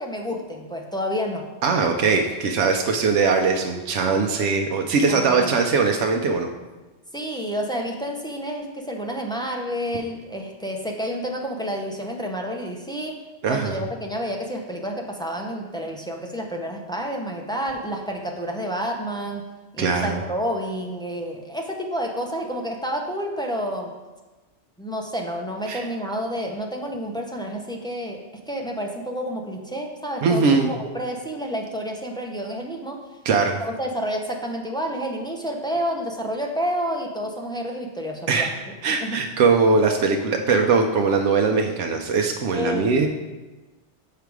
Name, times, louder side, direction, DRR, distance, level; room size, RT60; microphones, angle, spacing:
voice 1, 0.0-1.5 5.1-5.6 7.1-19.5 19.7-23.9 24.8-33.0 33.6-38.5 39.0-39.2 42.5-42.9, equal, 5° left, 1 dB, 0.5 m, -29 dB
voice 2, 1.6-6.5 13.4-13.8 19.8-20.2 25.7-25.8 30.2-30.8 33.3-33.6 38.3-38.5 38.8-43.1, right 4 dB, 85° right, 3 dB, 0.9 m, -21 dB
6.6 x 5.1 x 4.7 m, 1.2 s
omnidirectional pair, 1.2 m